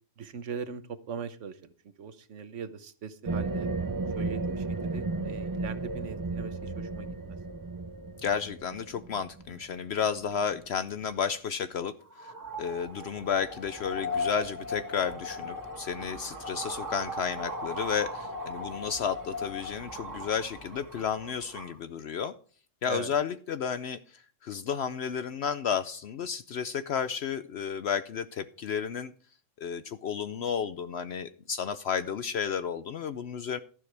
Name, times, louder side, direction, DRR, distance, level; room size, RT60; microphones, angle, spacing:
voice 1, 0.2-3.7 4.1-7.1 22.9-23.1, right 6 dB, 70° right, 12 dB, 1.3 m, -40 dB
sound 1, 3.2-10.5, right 3 dB, 30° right, 0.3 m, -34 dB
voice 2, 8.2-11.9 12.2-12.3 12.6-22.3 22.8-29.1 29.6-33.6, left 7 dB, 65° left, 12 dB, 0.8 m, -32 dB
sound 2, 12.0-21.8, left 1 dB, 15° right, 2.1 m, -38 dB
12.0 x 11.0 x 3.4 m, 0.43 s
omnidirectional pair, 1.3 m